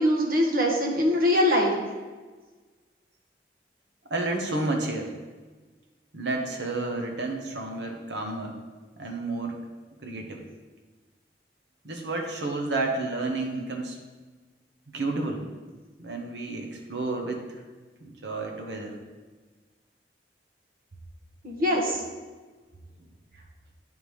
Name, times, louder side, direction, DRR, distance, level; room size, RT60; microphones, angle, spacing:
voice 1, 0.0-1.7 21.4-22.0, left 1 dB, 50° right, -1 dB, 1.4 m, -22 dB
voice 2, 4.1-5.1 6.1-8.6 9.0-9.6 10.0-10.4 11.8-14.0 14.9-15.5 16.0-17.6 18.0-19.0, right 2 dB, 80° right, 2 dB, 1.2 m, -31 dB
9.8 x 3.7 x 4.9 m, 1.3 s
head